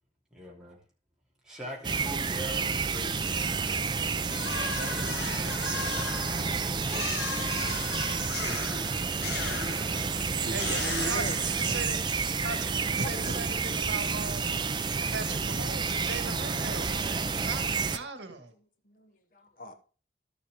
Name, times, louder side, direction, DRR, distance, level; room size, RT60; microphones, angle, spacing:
voice 1, 0.3-0.8 1.4-3.5 4.7-5.6 6.6-8.9, right 1 dB, 5° right, 3.0 m, -44 dB
sound 1, 1.8-18.0, right 5 dB, 25° right, 0.5 m, -30 dB
sound 2, 4.3-11.9, left 4 dB, 70° left, 1.4 m, -37 dB
voice 2, 4.8-6.1 10.5-12.0 12.4-14.5 15.1-18.5, right 3 dB, 85° right, 1.5 m, -39 dB
voice 3, 9.8-11.5 12.6-13.1 18.8-19.7, equal, 50° left, 1.0 m, -40 dB
12.5 x 6.9 x 3.6 m
head